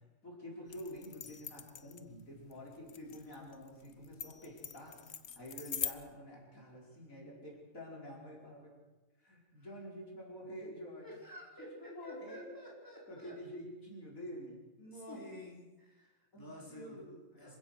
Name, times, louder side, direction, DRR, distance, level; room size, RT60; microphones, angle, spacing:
voice 1, 0.2-5.0 5.4-8.7 9.2-11.1 11.8-12.5 13.1-15.2 16.3-17.6, equal, 75° left, -2 dB, 5.5 m, -48 dB
sound 1, 0.7-5.9, left 8 dB, 55° left, 1.2 m, -43 dB
voice 2, 11.0-13.4 14.8-17.0 17.4-17.6, equal, 15° left, -4 dB, 5.2 m, -51 dB
26.5 x 16.0 x 6.5 m, 1.1 s
omnidirectional pair, 1.4 m